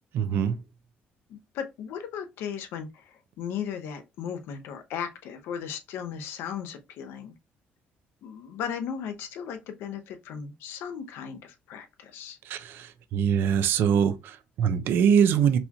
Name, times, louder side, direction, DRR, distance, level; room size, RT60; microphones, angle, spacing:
voice 1, 0.1-0.6 12.5-15.6, right 8 dB, 65° right, 0.4 m, -23 dB
voice 2, 1.3-7.3 8.2-12.4, left 8 dB, 80° left, 0.6 m, -36 dB
4.1 x 2.8 x 2.3 m
cardioid pair, 150°, 4 cm